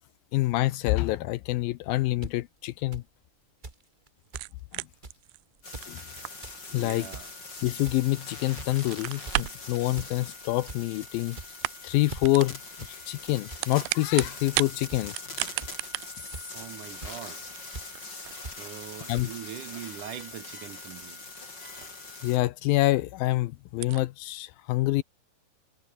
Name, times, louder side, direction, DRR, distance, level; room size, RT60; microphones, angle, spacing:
voice 1, 0.3-3.0 5.9-6.0 6.7-7.1 7.6-11.4 11.8-12.6 12.9-15.1 19.1-19.3 22.2-25.0, left 17 dB, 80° left, 2.3 m, -26 dB
sound 1, 2.2-2.3 2.9-3.0 3.6-3.8 4.1-4.2 4.3-4.5 5.0-5.2 5.6-5.9 6.2-6.6 7.0-7.3 7.8-8.1 8.6-8.8 9.2-9.5 10.0-10.1 10.4-10.8 11.3-11.7 12.1-12.3 12.8-12.9 13.2-13.6 14.2-14.3 14.9-15.0 15.6-15.9 16.3-16.6 17.0-17.2 17.7-17.8 18.4-18.6 19.1-19.3, right 2 dB, 15° right, 1.7 m, -41 dB
sound 2, 4.2-8.3 8.6-9.7 10.7-11.2 11.5-12.0 12.2-12.6 13.4-14.7 15.1-22.1 22.4-22.5 23.0-23.1 23.3-23.4 23.7-24.0, right 24 dB, 85° right, 2.5 m, -36 dB
sound 3, 5.6-22.4, left 3 dB, 25° left, 5.2 m, -42 dB
voice 2, 6.7-7.3 16.5-17.4 18.6-21.2, right 11 dB, 65° right, 2.4 m, -42 dB
omnidirectional pair, 4.5 m